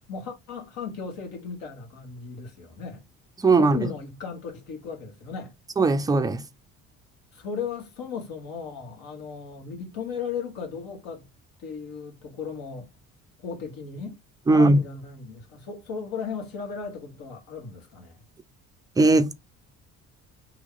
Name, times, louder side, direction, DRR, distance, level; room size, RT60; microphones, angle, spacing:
voice 1, 0.1-3.0 3.5-5.5 7.3-11.2 11.6-12.9 13.4-14.2 14.5-18.2, left 6 dB, 70° left, 1.4 m, -36 dB
voice 2, 3.4-3.8 5.8-6.4 14.5-14.8 19.0-19.3, right 2 dB, 10° right, 0.4 m, -18 dB
2.9 x 2.3 x 3.7 m
supercardioid pair, 70°, 36 cm